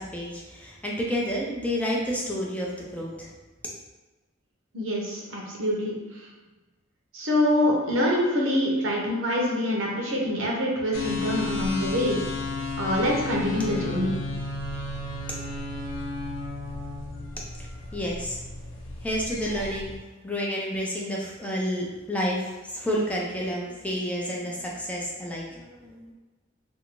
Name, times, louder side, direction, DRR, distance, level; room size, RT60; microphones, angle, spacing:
voice 1, 0.0-3.3 17.6-17.7 17.9-18.4 19.0-19.9 20.2-26.1, equal, 5° left, -3 dB, 0.4 m, -30 dB
voice 2, 4.7-5.9 7.1-12.2 12.8-14.1, left 1 dB, 80° right, -3 dB, 0.8 m, -25 dB
sound 1, 10.9-20.0, left 3 dB, 80° left, 0.5 m, -33 dB
2.6 x 2.5 x 2.9 m, 1.2 s
head